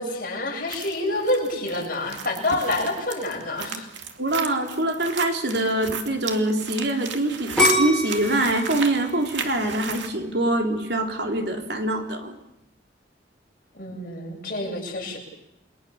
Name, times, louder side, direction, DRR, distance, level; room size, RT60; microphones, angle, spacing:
voice 1, 0.0-3.9 13.7-15.2, left 2 dB, 50° left, 0 dB, 7.8 m, -27 dB
sound 1, 0.7-10.1, right 6 dB, 85° right, 2.5 m, -35 dB
voice 2, 4.2-12.4, right 1 dB, 65° right, 4 dB, 3.6 m, -24 dB
sound 2, 7.6-10.5 11.0-11.5, left 1 dB, 5° left, 6.4 m, -25 dB
29.0 x 23.0 x 7.2 m, 0.84 s
head